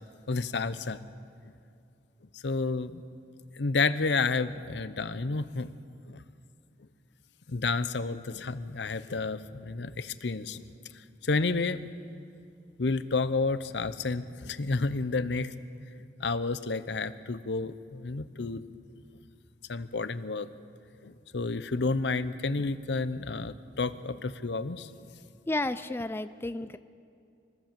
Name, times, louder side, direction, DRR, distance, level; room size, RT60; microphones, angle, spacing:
voice 1, 0.3-1.0 2.3-3.0 3.6-5.7 6.1-6.2 7.5-10.6 11.2-11.9 12.8-15.5 16.2-18.6 19.7-20.5 21.0-25.1, left 3 dB, 75° left, 13 dB, 0.8 m, -30 dB
voice 2, 25.5-26.8, left 2 dB, 15° left, 11 dB, 0.4 m, -32 dB
25.5 x 14.5 x 7.6 m, 2.4 s
head